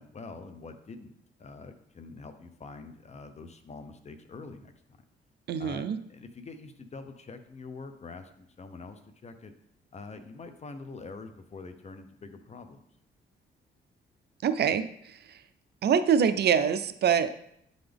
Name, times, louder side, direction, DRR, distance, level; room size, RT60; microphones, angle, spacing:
voice 1, 0.0-4.7 5.6-9.5 9.9-12.8, left 3 dB, 35° left, 8 dB, 0.7 m, -45 dB
voice 2, 5.5-6.0 14.4-15.4 15.8-17.3, right 7 dB, 60° right, 11 dB, 0.5 m, -25 dB
10.5 x 3.9 x 3.5 m, 0.73 s
cardioid pair, 100°, 19 cm